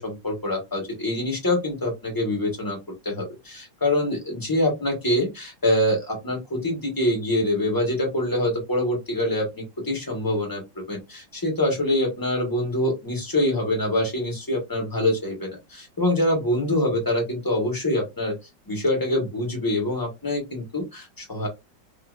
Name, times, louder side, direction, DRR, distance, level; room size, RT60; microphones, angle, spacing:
voice 1, 0.0-2.8 3.0-18.3 18.7-21.5, left 1 dB, 15° left, 0 dB, 1.2 m, -25 dB
3.7 x 2.7 x 2.4 m, 0.22 s
omnidirectional pair, 1.8 m